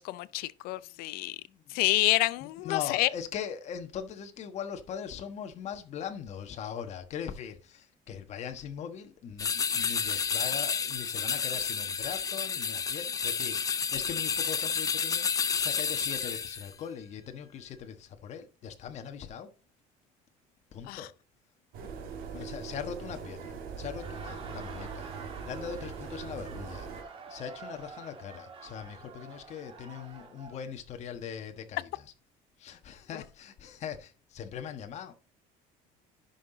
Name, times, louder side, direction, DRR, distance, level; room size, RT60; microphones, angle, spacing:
voice 1, 0.0-1.4 1.7-3.1 20.9-21.1, left 18 dB, 75° left, 0.6 m, -28 dB
voice 2, 0.8-1.8 2.4-19.5 20.7-21.1 22.3-25.1 25.4-26.9 27.3-32.0 32.6-35.1, left 8 dB, 45° left, 1.4 m, -41 dB
sound 1, 9.4-16.7, left 6 dB, 20° left, 0.5 m, -30 dB
sound 2, 21.7-27.0, right 5 dB, 70° right, 1.9 m, -41 dB
Laughter, 23.8-30.7, right 5 dB, 35° right, 1.9 m, -48 dB
11.0 x 5.8 x 3.9 m
cardioid pair, 140°, 16 cm